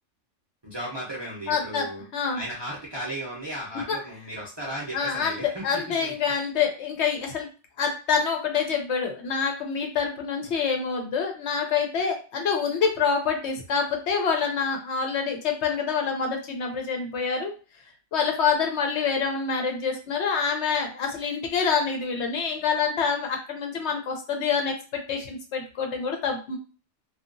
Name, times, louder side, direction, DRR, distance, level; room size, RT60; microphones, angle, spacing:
voice 1, 0.6-2.0 2.3-6.1, right 1 dB, 30° right, -5 dB, 0.6 m, -35 dB
voice 2, 1.5-1.9 2.1-2.4 3.9-4.0 4.9-7.5 7.8-17.5 18.1-26.6, left 6 dB, 70° left, 3 dB, 0.9 m, -26 dB
2.7 x 2.4 x 2.5 m, 0.35 s
omnidirectional pair, 1.3 m